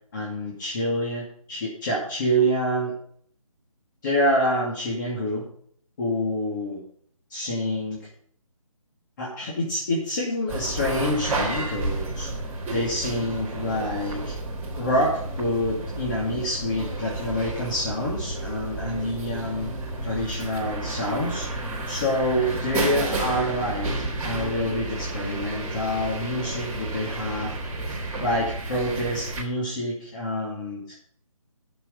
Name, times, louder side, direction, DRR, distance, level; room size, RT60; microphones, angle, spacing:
voice 1, 0.1-2.9 4.0-5.5 6.0-6.8 7.3-8.0 9.2-12.3 12.7-14.3 14.8-19.7 20.0-21.5 21.9-27.5 28.2-30.8, equal, 35° left, -5 dB, 2.6 m, -27 dB
sound 1, 10.5-29.4, right 2 dB, 10° right, 1.5 m, -31 dB
13.0 x 6.9 x 5.4 m, 0.64 s
figure-of-eight pair, 160°, 18 cm